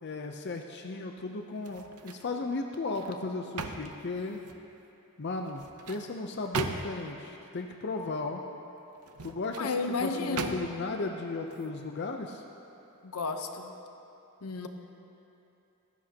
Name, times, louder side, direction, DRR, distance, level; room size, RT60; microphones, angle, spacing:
voice 1, 0.0-4.4 5.2-8.4 9.2-9.7 10.0-12.4, left 3 dB, 50° left, 3 dB, 0.6 m, -35 dB
sound 1, 1.6-2.3 2.7-4.7 5.4-7.2 8.9-9.7 10.4-11.0 11.4-11.7, right 4 dB, 85° right, 0.8 m, -39 dB
voice 2, 9.6-10.5 13.0-13.7 14.4-14.7, left 4 dB, 80° left, 6 dB, 0.9 m, -32 dB
18.5 x 15.0 x 2.9 m, 2.9 s
head